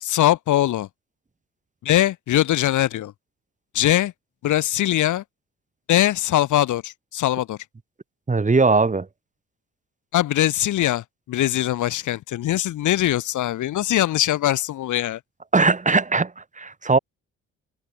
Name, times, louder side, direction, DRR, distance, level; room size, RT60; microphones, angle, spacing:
voice 1, 0.0-0.9 1.8-3.1 3.7-4.1 4.4-5.2 5.9-7.6 10.1-15.2, left 13 dB, 80° left, 2.4 m, -21 dB
voice 2, 8.3-9.1 15.5-17.0, right 4 dB, 25° right, 4.0 m, -19 dB
cardioid pair, 90°, 30 cm